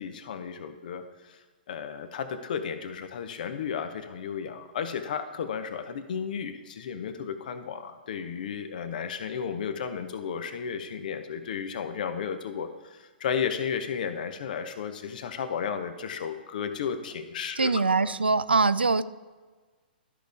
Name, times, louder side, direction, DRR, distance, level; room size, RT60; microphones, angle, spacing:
voice 1, 0.0-1.4 1.7-17.7 18.0-18.1, left 7 dB, 55° left, 9 dB, 0.8 m, -33 dB
voice 2, 17.6-19.0, right 4 dB, 85° right, 15 dB, 0.4 m, -23 dB
13.0 x 5.1 x 3.4 m, 1.4 s
figure-of-eight pair, 120°, 5 cm